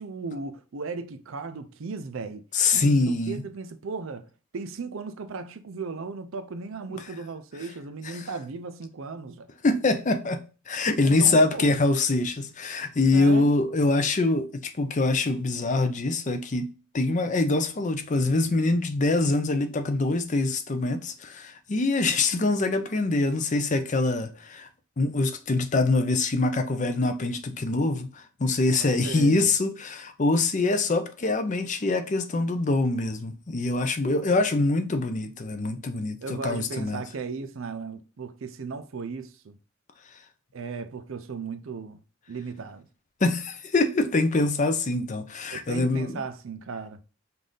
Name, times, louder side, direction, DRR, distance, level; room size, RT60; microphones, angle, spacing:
voice 1, 0.0-2.4 2.7-9.5 11.0-11.7 13.1-13.5 28.8-29.5 34.3-34.5 36.2-39.6 40.5-42.0 42.3-42.9 45.5-47.0, right 4 dB, 65° right, 0.5 m, -36 dB
voice 2, 2.5-3.4 9.6-16.7 16.9-24.7 25.0-37.0 43.2-46.2, left 2 dB, 35° left, 0.5 m, -24 dB
5.3 x 2.6 x 3.8 m
head